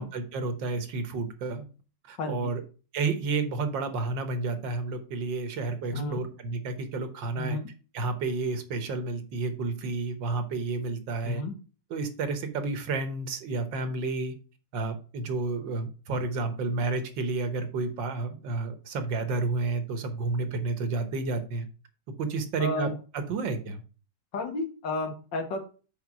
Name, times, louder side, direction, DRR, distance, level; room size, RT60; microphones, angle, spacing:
voice 1, 0.0-1.7 2.1-2.6 2.9-7.6 7.9-11.4 11.9-14.3 14.7-21.7 22.2-22.9 23.1-23.8, right 3 dB, 85° right, 8 dB, 1.8 m, -31 dB
voice 2, 2.2-2.5 5.9-6.2 7.4-7.7 11.2-11.5 22.6-22.9 24.3-25.6, left 2 dB, 80° left, 4 dB, 2.1 m, -32 dB
5.7 x 5.1 x 5.9 m, 0.36 s
omnidirectional pair, 2.0 m